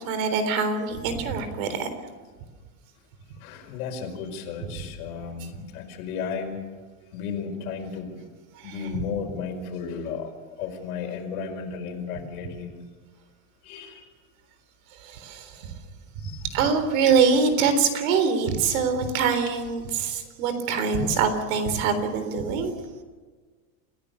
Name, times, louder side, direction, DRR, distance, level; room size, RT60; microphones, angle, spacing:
voice 1, 0.0-1.9 8.6-8.8 14.9-15.7 16.2-22.7, right 5 dB, 65° right, 10 dB, 3.8 m, -24 dB
voice 2, 3.4-6.6 7.1-8.2 8.6-10.3 10.6-12.7 13.6-14.1 16.2-16.4, left 6 dB, 90° left, 4 dB, 5.2 m, -34 dB
28.5 x 16.0 x 6.9 m, 1.4 s
cardioid pair, 170°, 43 cm